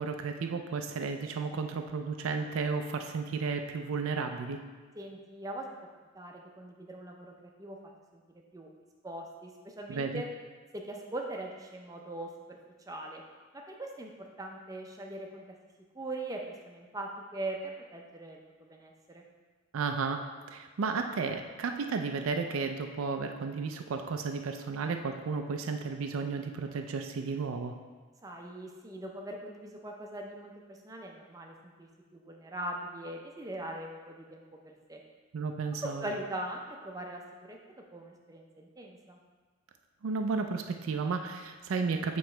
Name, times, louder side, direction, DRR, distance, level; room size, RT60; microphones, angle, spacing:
voice 1, 0.0-4.6 9.9-10.2 19.7-20.2 20.5-27.7 35.3-36.1 40.0-42.2, right 4 dB, 85° right, 5 dB, 0.4 m, -33 dB
voice 2, 4.9-5.7 6.1-7.3 7.6-7.8 8.1-8.2 8.5-8.7 9.0-10.3 10.7-12.6 12.9-13.2 13.5-15.4 15.9-18.4 18.7-19.2 28.2-35.0 36.0-37.2 37.5-37.6 37.9-39.2, right 1 dB, 15° right, 1 dB, 0.5 m, -41 dB
7.7 x 3.1 x 4.4 m, 1.4 s
head